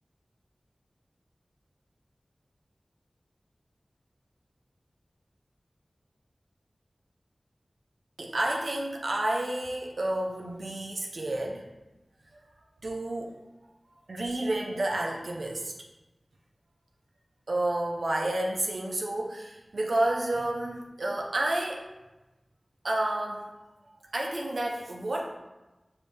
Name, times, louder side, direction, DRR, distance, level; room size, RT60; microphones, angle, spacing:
voice 1, 8.2-11.7 12.3-12.4 12.8-13.3 14.1-15.7 17.5-21.9 22.8-23.5 24.0-25.4, right 1 dB, 80° right, -1 dB, 0.4 m, -30 dB
5.2 x 2.6 x 3.4 m, 1.1 s
wide cardioid pair, 45°, 0 cm